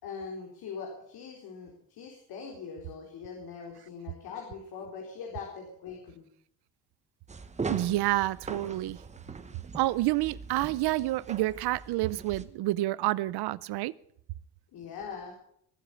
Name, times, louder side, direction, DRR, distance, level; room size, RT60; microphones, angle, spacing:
voice 1, 0.0-6.3 14.7-15.3, left 5 dB, 70° left, 0 dB, 4.3 m, -42 dB
sound 1, 7.3-12.4, right 4 dB, 20° right, 1.1 m, -40 dB
voice 2, 7.7-9.0 9.7-13.9, right 17 dB, 75° right, 19 dB, 0.7 m, -28 dB
21.5 x 8.3 x 7.2 m, 0.68 s
cardioid pair, 140°, 39 cm